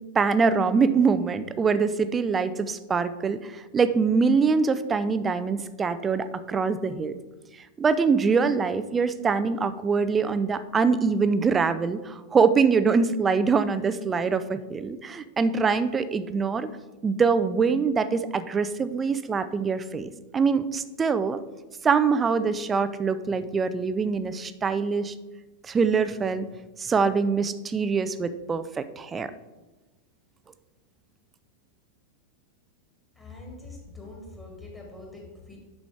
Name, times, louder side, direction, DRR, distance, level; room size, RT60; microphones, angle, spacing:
voice 1, 0.1-7.2 7.8-16.7 17.0-21.4 21.8-25.1 25.6-26.5 26.8-29.3, right 5 dB, 20° right, 13 dB, 0.4 m, -24 dB
voice 2, 33.2-35.6, left 3 dB, 10° left, -2 dB, 2.2 m, -43 dB
7.4 x 6.0 x 3.4 m, 1.1 s
figure-of-eight pair, 90°, 0 cm